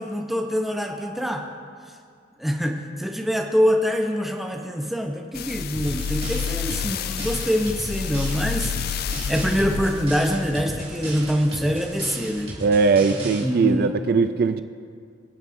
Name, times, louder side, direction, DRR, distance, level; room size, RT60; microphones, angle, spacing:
voice 1, 0.0-1.4 2.4-8.7 9.3-12.5 13.3-14.0, equal, ahead, 2 dB, 0.7 m, -24 dB
sound 1, 5.3-11.8 12.4-12.5, left 7 dB, 50° left, 0.3 m, -30 dB
sound 2, 5.7-13.4, right 1 dB, 30° right, 2.8 m, -35 dB
voice 2, 12.6-14.6, right 4 dB, 50° right, 9 dB, 0.3 m, -20 dB
24.0 x 8.1 x 2.6 m, 2.3 s
head